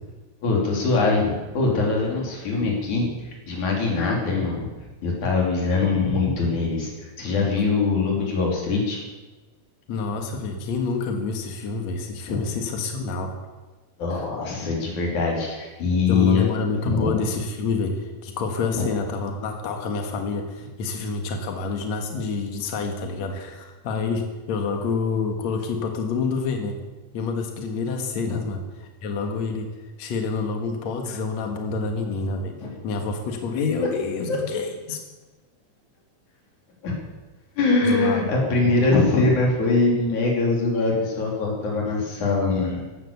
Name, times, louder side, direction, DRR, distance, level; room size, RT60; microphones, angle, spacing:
voice 1, 0.4-4.7 5.0-9.0 12.3-12.4 14.0-16.4 16.9-17.2 18.7-18.9 28.3-28.4 32.6-32.7 33.8-34.0 34.3-34.4 36.8-37.0 37.6-42.8, left 3 dB, 85° left, -2 dB, 4.8 m, -22 dB
voice 2, 9.9-13.4 14.2-14.3 16.1-26.8 27.1-29.7 30.0-32.6 32.8-35.0 37.8-38.2, left 4 dB, 70° left, 4 dB, 2.8 m, -28 dB
16.0 x 12.0 x 7.0 m, 1.2 s
omnidirectional pair, 3.3 m